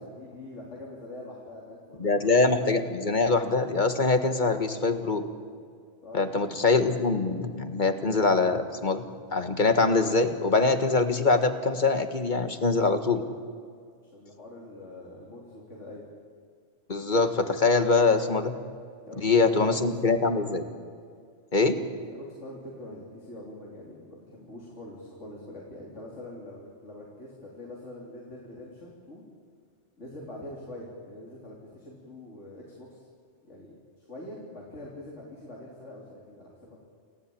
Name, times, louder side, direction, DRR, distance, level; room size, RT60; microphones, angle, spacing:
voice 1, 0.0-2.3 6.0-6.6 14.1-16.0 19.1-20.5 22.0-29.2 30.0-33.1 33.5-36.8, left 1 dB, 90° left, -3 dB, 3.8 m, -44 dB
voice 2, 2.0-5.2 6.1-9.0 9.3-13.2 16.9-18.5 19.2-20.6 21.5-21.8, left 3 dB, 40° left, 8 dB, 1.7 m, -23 dB
29.0 x 16.0 x 8.7 m, 2.2 s
omnidirectional pair, 1.2 m